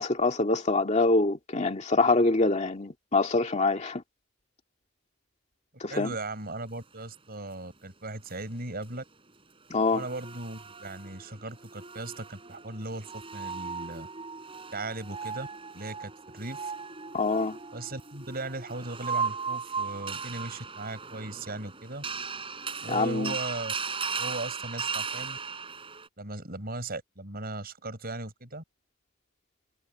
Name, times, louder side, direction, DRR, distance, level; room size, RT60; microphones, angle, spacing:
voice 1, 0.0-4.0 5.8-6.1 9.7-10.0 17.1-17.6 22.9-23.3, left 3 dB, 35° left, 2.2 m, -25 dB
voice 2, 5.9-9.0 9.9-14.1 14.7-15.5 15.7-16.7 17.7-22.0 22.8-23.7 24.2-25.4 26.2-28.6, right 2 dB, 45° right, 7.1 m, -38 dB
sound 1, 8.2-8.3 9.8-26.1, right 5 dB, 25° right, 5.5 m, -37 dB
head